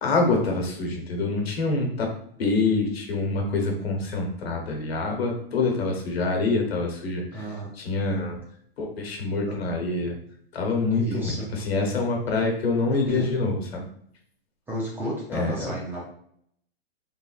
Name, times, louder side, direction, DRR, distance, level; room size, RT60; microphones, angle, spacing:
voice 1, 0.0-2.1 2.4-7.4 7.8-8.4 8.8-10.1 10.5-13.8 15.3-15.7, left 3 dB, 85° left, 1 dB, 1.0 m, -26 dB
voice 2, 7.3-7.7 11.0-11.5 12.9-13.3 14.7-16.1, right 1 dB, 5° right, -5 dB, 0.3 m, -33 dB
3.2 x 2.4 x 2.3 m, 0.66 s
hypercardioid pair, 140°, 30 cm